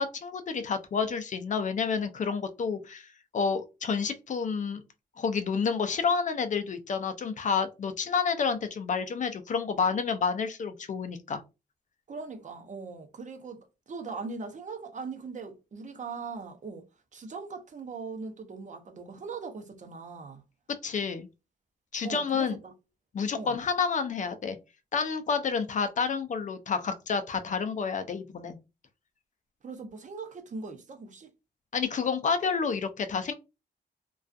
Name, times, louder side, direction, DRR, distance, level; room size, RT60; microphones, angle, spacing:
voice 1, 0.0-3.1 3.3-4.8 5.2-11.4 20.8-21.3 21.9-22.6 23.1-24.6 24.9-28.6 31.7-33.3, left 5 dB, 45° left, 0.4 m, -29 dB
voice 2, 12.1-16.9 17.1-20.4 22.0-22.7 23.3-23.6 29.6-31.3, right 4 dB, 45° right, 0.6 m, -40 dB
2.3 x 2.3 x 2.5 m
cardioid pair, 85°, 17 cm